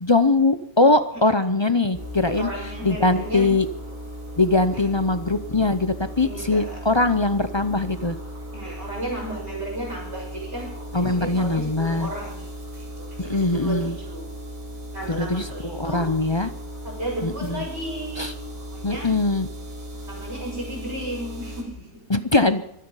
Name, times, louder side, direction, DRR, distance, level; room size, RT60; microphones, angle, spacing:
voice 1, 0.0-2.5 2.8-3.7 4.4-8.2 10.9-12.1 13.2-13.9 15.1-16.5 17.2-17.6 18.2-18.3 18.8-19.5 22.1-22.7, left 2 dB, 30° left, 10 dB, 0.6 m, -21 dB
sound 1, 1.9-21.6, equal, 75° right, 4.8 m, -37 dB
voice 2, 2.4-3.5 4.7-4.9 6.2-6.8 8.5-14.3 14.9-16.1 16.8-18.3 18.7-19.1 20.1-22.2, right 1 dB, 50° right, -8 dB, 6.3 m, -34 dB
24.5 x 9.4 x 5.6 m, 0.74 s
omnidirectional pair, 1.4 m